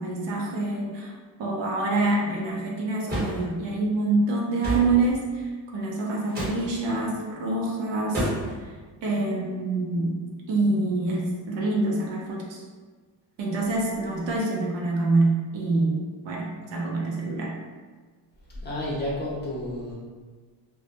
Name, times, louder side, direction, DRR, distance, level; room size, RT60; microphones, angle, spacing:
voice 1, 0.0-8.7 9.0-12.6 13.4-17.6, right 2 dB, 80° right, -3 dB, 0.7 m, -26 dB
sound 1, 3.1-3.4 4.6-4.9 6.3-6.6 8.1-8.6, equal, 20° right, 1.0 m, -28 dB
voice 2, 18.5-19.9, left 1 dB, 25° left, -6 dB, 0.6 m, -31 dB
2.1 x 2.1 x 2.8 m, 1.4 s
cardioid pair, 120°, 43 cm